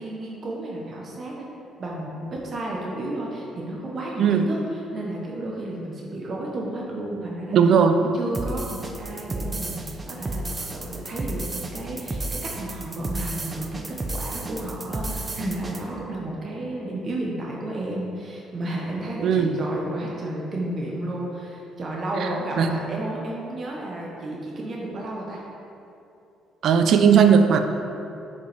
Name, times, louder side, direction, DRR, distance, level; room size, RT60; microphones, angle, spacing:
voice 1, 0.0-1.5 1.8-7.7 8.0-25.4, right 1 dB, 50° right, -2 dB, 1.0 m, -32 dB
voice 2, 7.5-8.0 19.2-19.6 22.6-22.8 26.6-27.6, right 7 dB, 65° right, 7 dB, 0.5 m, -17 dB
sound 1, 8.3-15.8, right 2 dB, 25° right, 0.6 m, -32 dB
6.8 x 5.3 x 3.4 m, 2.7 s
supercardioid pair, 70°, 0 cm